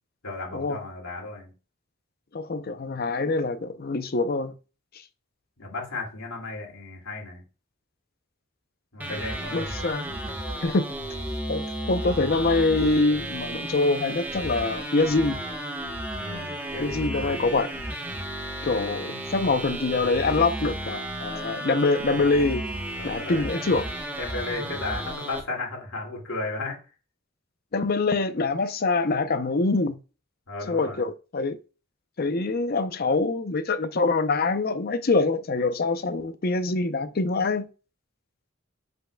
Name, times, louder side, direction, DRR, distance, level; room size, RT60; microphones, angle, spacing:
voice 1, 0.2-1.5 5.6-7.4 8.9-9.7 16.1-17.5 23.0-23.6 24.2-26.8 30.5-31.0, left 3 dB, 85° left, 2.3 m, -35 dB
voice 2, 2.3-4.5 9.1-9.2 9.5-10.0 10.6-11.0 11.5-15.4 16.8-17.7 18.6-22.6 23.0-23.8 27.7-30.0 30.7-31.6 32.2-37.7, left 3 dB, 45° left, 0.6 m, -25 dB
sound 1, 9.0-25.4, right 1 dB, 10° right, 1.0 m, -33 dB
7.8 x 5.6 x 2.2 m
head